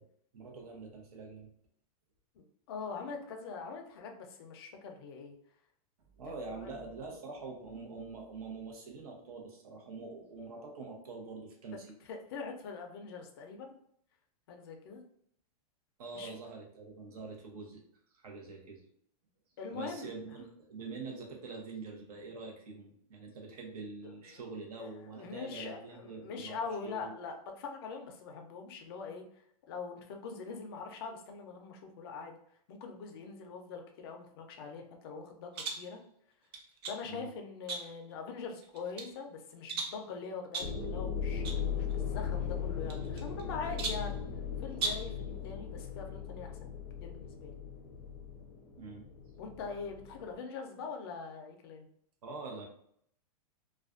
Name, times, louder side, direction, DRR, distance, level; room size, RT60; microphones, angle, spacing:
voice 1, 0.3-1.5 6.2-11.9 16.0-17.8 18.1-18.8 19.7-27.2 37.0-37.3 48.8-49.1 52.2-52.7, right 3 dB, 70° right, 1 dB, 0.8 m, -45 dB
voice 2, 2.7-5.4 6.3-6.7 12.0-13.7 14.5-15.0 16.1-16.3 19.6-20.1 24.0-24.4 24.8-29.2 29.7-32.4 32.7-36.0 36.9-41.4 41.8-44.2 44.6-46.7 47.0-47.5 49.4-51.9, left 5 dB, 40° left, 3 dB, 0.4 m, -43 dB
sound 1, 35.5-35.9 36.5-37.0 37.7-38.1 38.6-39.1 39.7-40.0 40.5-40.8 41.4-41.6 41.9-42.0 42.9-43.4 43.8-44.1 44.7-45.1, right 3 dB, 40° right, 0.5 m, -38 dB
sound 2, 40.6-50.4, left 7 dB, 90° left, 0.6 m, -38 dB
2.4 x 2.2 x 2.4 m, 0.67 s
supercardioid pair, 165°, 20 cm